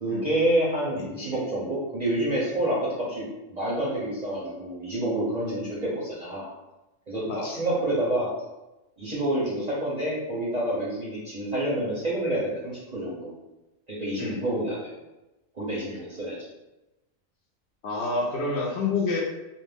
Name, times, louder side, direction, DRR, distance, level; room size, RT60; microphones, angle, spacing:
voice 1, 0.0-6.5 7.1-8.3 9.0-13.3 13.9-14.9 15.5-16.4, right 1 dB, 45° right, -7 dB, 0.5 m, -28 dB
voice 2, 17.8-19.2, left 3 dB, 65° left, -2 dB, 0.8 m, -28 dB
2.5 x 2.1 x 3.3 m, 1.0 s
omnidirectional pair, 1.4 m